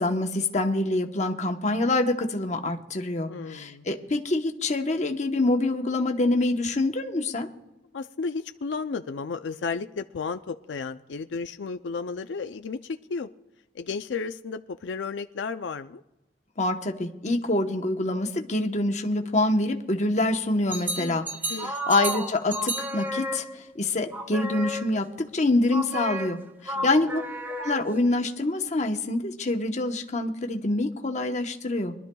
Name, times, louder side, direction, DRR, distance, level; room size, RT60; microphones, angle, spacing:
voice 1, 0.0-7.5 16.6-21.2 21.6-25.1 25.3-27.2 27.6-31.9, left 2 dB, 40° left, 4 dB, 1.0 m, -26 dB
voice 2, 3.3-3.9 7.9-13.3 13.7-16.0 21.0-21.2 21.5-21.7 26.8-27.0, left 4 dB, 85° left, 8 dB, 0.4 m, -33 dB
sound 1, 20.7-23.7 24.1-25.2 25.7-28.1, right 1 dB, 10° right, 0.7 m, -32 dB
24.0 x 12.0 x 2.3 m, 0.98 s
head